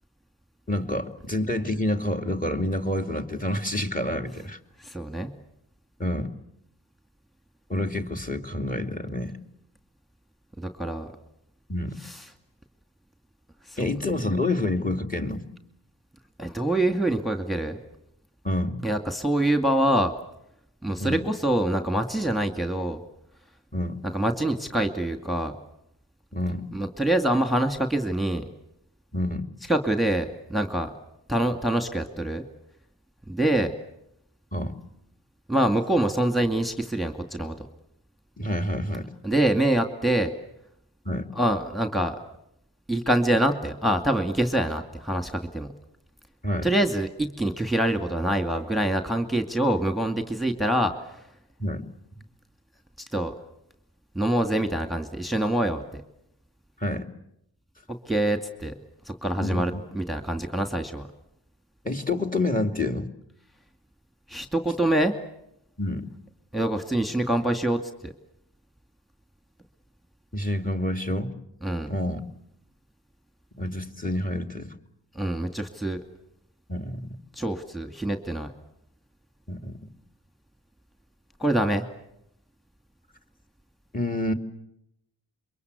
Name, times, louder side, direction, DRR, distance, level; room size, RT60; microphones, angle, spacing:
voice 1, 0.7-4.6 6.0-6.3 7.7-9.4 11.7-12.0 13.8-15.4 18.4-18.9 21.0-21.2 23.7-24.0 26.3-26.7 29.1-29.5 34.5-34.7 38.4-39.1 41.0-41.3 46.4-46.7 51.6-51.9 56.8-57.1 59.4-59.8 61.8-63.1 65.8-66.1 70.3-71.3 71.9-72.2 73.6-74.8 76.7-77.2 79.5-79.8 83.9-84.3, left 1 dB, 20° left, 7 dB, 2.7 m, -28 dB
voice 2, 4.8-5.3 10.6-11.1 12.0-12.2 13.7-13.9 14.2-14.4 16.4-17.8 18.8-20.1 20.8-23.0 24.0-25.5 26.7-28.4 29.7-30.9 31.3-32.4 33.3-33.7 35.5-37.7 39.2-40.3 41.3-42.2 42.9-45.7 46.6-50.9 53.1-53.3 54.1-56.0 58.1-58.7 59.1-61.1 64.3-65.1 66.5-68.1 71.6-71.9 75.1-76.0 77.4-78.5 81.4-81.9, right 1 dB, ahead, 6 dB, 2.4 m, -25 dB
27.5 x 23.5 x 8.3 m, 0.79 s
cardioid pair, 55°, 44 cm